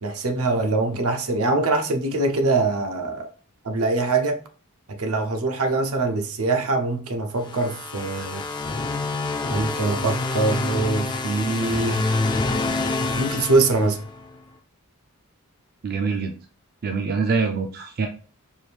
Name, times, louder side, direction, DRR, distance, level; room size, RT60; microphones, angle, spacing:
voice 1, 0.0-3.3 3.6-4.4 5.0-8.4 9.5-12.0 13.2-14.0, right 3 dB, 75° right, 0.7 m, -23 dB
sound 1, 7.4-14.3, left 3 dB, 20° left, 0.3 m, -27 dB
voice 2, 15.8-16.3 16.8-18.1, right 4 dB, 45° right, 0.4 m, -24 dB
4.6 x 2.5 x 3.3 m
head